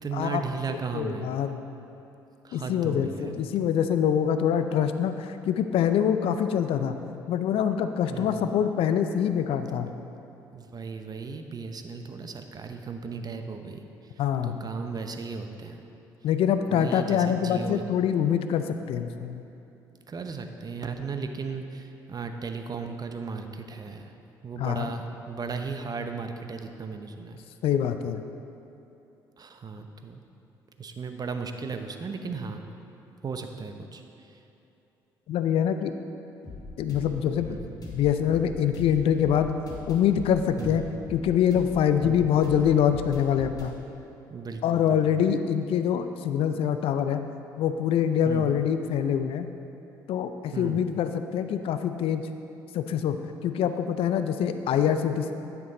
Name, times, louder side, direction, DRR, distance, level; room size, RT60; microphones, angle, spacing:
voice 1, 0.0-1.2 2.4-3.5 8.1-8.5 10.5-14.1 14.4-15.8 16.7-17.8 20.1-24.1 24.4-27.4 29.4-30.2 30.8-32.6 33.2-34.4 37.4-37.8 40.6-40.8 42.0-42.3 44.3-45.2 48.2-48.5 50.5-50.9, right 5 dB, 40° right, 6 dB, 0.8 m, -36 dB
voice 2, 0.7-1.6 2.5-7.0 7.3-9.9 14.2-14.6 16.2-19.4 24.6-24.9 27.6-28.2 35.3-35.9 36.8-37.6 37.9-39.5 39.9-40.8 41.1-43.7 44.6-47.2 47.6-49.5 50.1-52.3 52.7-53.2 53.4-55.3, left 8 dB, 60° left, 9 dB, 0.5 m, -25 dB
sound 1, 36.4-43.7, left 3 dB, 40° left, 2.1 m, -41 dB
10.5 x 6.0 x 4.1 m, 2.9 s
hypercardioid pair, 50°, 11 cm